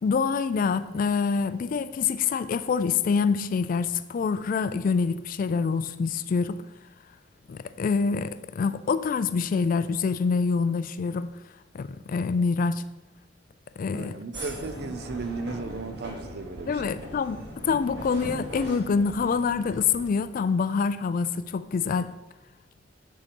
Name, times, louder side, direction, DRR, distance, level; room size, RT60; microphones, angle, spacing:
voice 1, 0.0-6.6 7.5-11.3 11.7-12.8 13.8-14.2 16.7-22.1, left 5 dB, 50° left, 14 dB, 0.3 m, -26 dB
voice 2, 13.9-17.0, right 3 dB, 60° right, 10 dB, 0.6 m, -35 dB
sound 1, 14.3-20.1, equal, 85° right, 2.5 m, -40 dB
7.4 x 4.2 x 5.2 m, 1.0 s
head